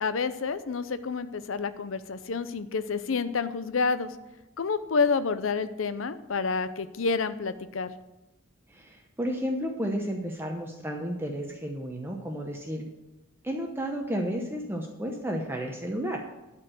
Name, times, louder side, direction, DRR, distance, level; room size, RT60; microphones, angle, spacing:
voice 1, 0.0-4.2 4.6-7.9, left 4 dB, 75° left, 13 dB, 0.6 m, -29 dB
voice 2, 8.7-12.9 13.4-16.2, equal, 10° right, 1 dB, 0.8 m, -32 dB
12.0 x 4.6 x 7.8 m, 1.0 s
head